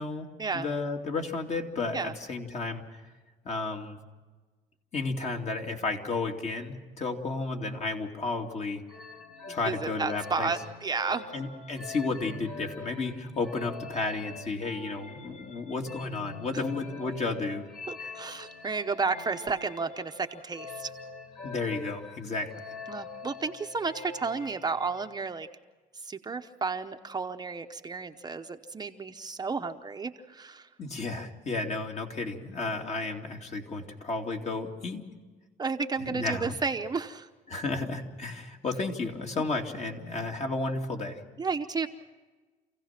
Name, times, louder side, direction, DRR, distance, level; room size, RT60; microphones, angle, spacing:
voice 1, 0.0-3.0 3.4-4.0 4.9-8.8 9.5-10.5 11.3-17.7 18.0-18.2 21.4-22.5 30.8-35.0 36.0-36.5 37.5-41.2, left 3 dB, 40° left, 2 dB, 2.6 m, -33 dB
sound 1, 8.9-25.3, left 3 dB, 60° left, 4.7 m, -44 dB
voice 2, 9.6-11.3 17.9-20.9 22.9-25.5 26.0-30.7 35.6-37.3 41.4-41.9, right 4 dB, 25° right, 6 dB, 0.9 m, -32 dB
27.5 x 16.5 x 5.9 m, 1.3 s
cardioid pair, 110°, 17 cm